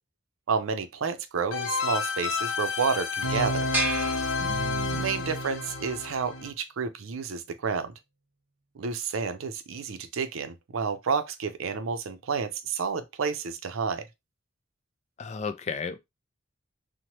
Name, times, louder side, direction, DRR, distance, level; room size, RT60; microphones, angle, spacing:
voice 1, 0.5-3.7 5.0-7.9 8.8-14.1, right 5 dB, 90° right, 0.5 m, -30 dB
sound 1, 1.5-6.5, left 3 dB, 75° left, 0.6 m, -30 dB
sound 2, 3.7-5.2, right 2 dB, 10° right, 0.8 m, -32 dB
voice 2, 4.4-5.1 15.2-16.0, left 5 dB, 35° left, 0.3 m, -35 dB
2.9 x 2.1 x 2.9 m
head